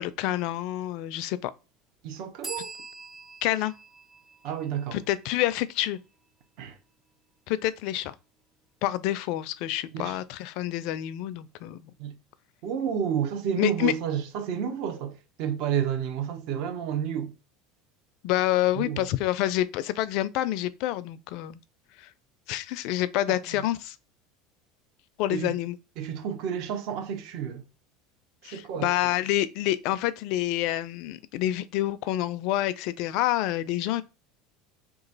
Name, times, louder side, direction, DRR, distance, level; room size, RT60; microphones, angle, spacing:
voice 1, 0.0-1.5 3.4-3.7 4.9-6.0 7.5-8.1 8.8-11.9 13.6-13.9 18.2-21.6 22.0-22.1 22.5-24.0 25.2-25.8 28.4-34.0, left 14 dB, 65° left, 0.4 m, -28 dB
voice 2, 2.0-2.7 4.4-5.0 6.6-6.8 9.9-10.2 12.0-12.1 12.6-17.3 18.7-19.1 23.5-23.6 25.3-25.5 26.0-27.7 28.4-28.9, right 8 dB, 65° right, 0.9 m, -30 dB
sound 1, 2.4-6.0, right 4 dB, 20° right, 0.6 m, -44 dB
3.0 x 2.4 x 3.9 m
supercardioid pair, 115°, 0 cm